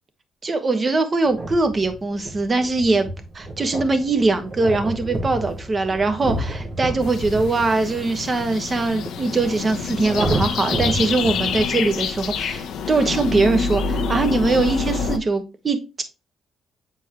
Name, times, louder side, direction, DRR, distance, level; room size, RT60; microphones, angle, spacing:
voice 1, 0.4-3.1 3.3-16.0, right 3 dB, 30° right, 8 dB, 1.3 m, -22 dB
sound 1, 1.2-11.6, right 1 dB, 55° right, 2.0 m, -30 dB
sound 2, 7.0-15.2, left 5 dB, 80° left, 0.7 m, -27 dB
7.9 x 4.5 x 2.9 m, 0.27 s
cardioid pair, 90°, 0 cm